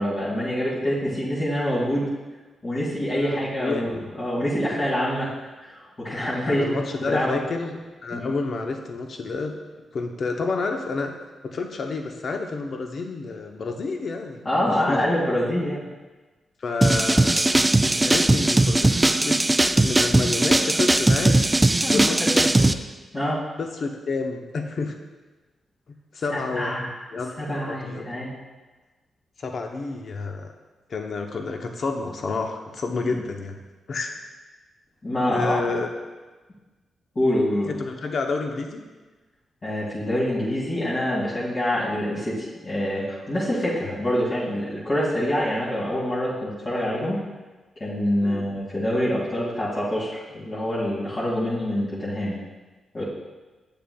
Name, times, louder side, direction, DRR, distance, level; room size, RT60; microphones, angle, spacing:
voice 1, 0.0-2.1 2.6-6.6 7.0-7.4 8.1-8.3 14.4-15.8 21.8-22.0 22.3-22.4 23.1-23.4 26.3-26.9 27.4-28.3 35.0-35.6 37.1-37.7 39.6-47.2 47.8-52.4 52.9-53.0, equal, 45° left, -9 dB, 2.2 m, -26 dB
voice 2, 3.1-4.0 6.5-9.5 9.9-11.1 11.4-14.5 14.9-15.0 16.6-19.4 19.7-21.5 21.9-22.2 22.6-22.7 23.6-24.9 26.1-26.8 27.1-28.1 29.4-30.5 30.9-33.6 33.9-34.1 35.3-35.9 37.7-38.8 48.2-48.4, left 3 dB, 60° left, 4 dB, 0.7 m, -29 dB
sound 1, 16.8-22.7, right 2 dB, 20° right, 0.3 m, -19 dB
7.9 x 6.6 x 2.3 m, 1.2 s
cardioid pair, 65°, 0 cm